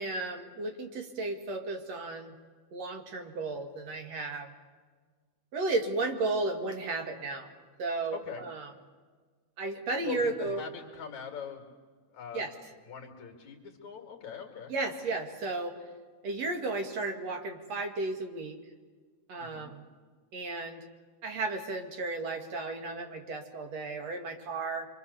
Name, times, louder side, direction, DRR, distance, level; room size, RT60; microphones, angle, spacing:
voice 1, 0.0-2.3 2.7-4.5 5.5-7.5 7.8-8.7 9.6-10.6 12.3-12.5 14.7-15.8 16.2-18.6 19.3-19.8 20.3-20.8 21.2-24.9, right 3 dB, 55° right, 4 dB, 2.9 m, -34 dB
voice 2, 8.1-8.5 10.0-11.7 12.1-12.5 12.8-14.7 19.4-19.7, left 7 dB, 65° left, 2 dB, 3.4 m, -42 dB
26.0 x 25.0 x 6.9 m, 1.5 s
omnidirectional pair, 3.7 m